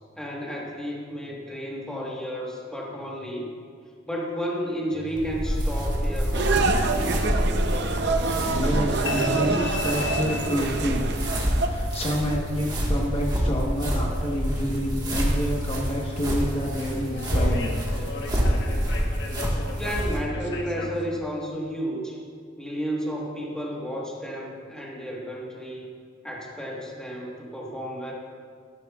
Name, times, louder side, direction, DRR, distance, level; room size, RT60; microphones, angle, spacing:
voice 1, 0.2-3.5 4.1-7.4 19.7-22.2 22.6-25.9 26.2-28.1, equal, 5° left, -3 dB, 1.4 m, -32 dB
sound 1, 4.9-21.1, left 2 dB, 65° left, 1.1 m, -36 dB
sound 2, 5.2-20.2, equal, 20° right, 1.5 m, -27 dB
sound 3, 6.3-11.7, right 3 dB, 65° right, 0.7 m, -26 dB
voice 2, 8.5-11.3 11.6-17.8 19.6-19.7, equal, 35° left, -2 dB, 1.1 m, -28 dB
13.5 x 11.0 x 2.4 m, 2.1 s
head